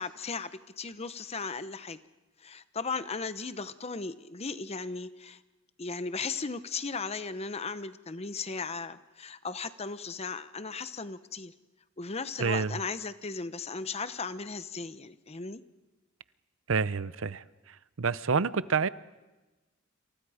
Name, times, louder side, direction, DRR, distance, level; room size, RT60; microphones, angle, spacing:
voice 1, 0.0-2.0 2.4-5.4 5.8-11.5 12.0-15.6, left 4 dB, 30° left, 0.9 m, -36 dB
voice 2, 12.4-12.8 16.7-17.4 18.0-18.9, right 5 dB, 75° right, 0.7 m, -28 dB
29.0 x 27.5 x 5.0 m
head